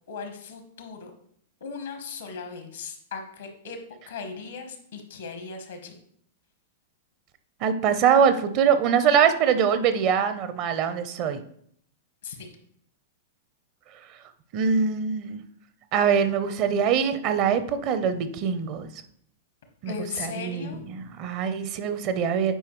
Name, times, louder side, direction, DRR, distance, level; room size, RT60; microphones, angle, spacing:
voice 1, 0.1-1.1 1.6-3.8 4.1-6.0 12.2-12.5 19.9-20.8, left 5 dB, 75° left, 5 dB, 1.2 m, -37 dB
voice 2, 7.6-11.4 14.5-15.4 15.9-18.9 19.8-22.6, right 7 dB, 45° right, 11 dB, 0.7 m, -23 dB
9.0 x 4.7 x 3.1 m, 0.65 s
hypercardioid pair, 105°, 0 cm